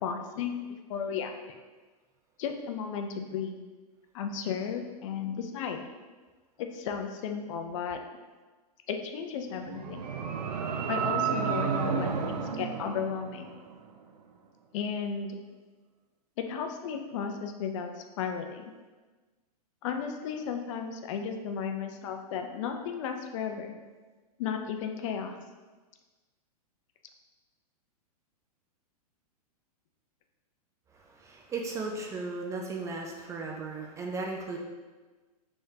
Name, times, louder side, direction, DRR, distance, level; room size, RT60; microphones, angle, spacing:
voice 1, 0.0-1.6 2.4-3.6 4.1-5.8 6.6-8.0 8.9-10.0 10.9-13.5 14.7-15.4 16.4-17.9 18.2-18.7 19.8-23.8 24.4-25.4, left 7 dB, 55° left, 5 dB, 0.4 m, -34 dB
sound 1, 9.5-13.8, right 6 dB, 80° right, 0.5 m, -31 dB
voice 2, 30.9-34.6, right 3 dB, 15° right, 0 dB, 0.4 m, -36 dB
3.5 x 3.4 x 2.7 m, 1.3 s
hypercardioid pair, 120°, 20 cm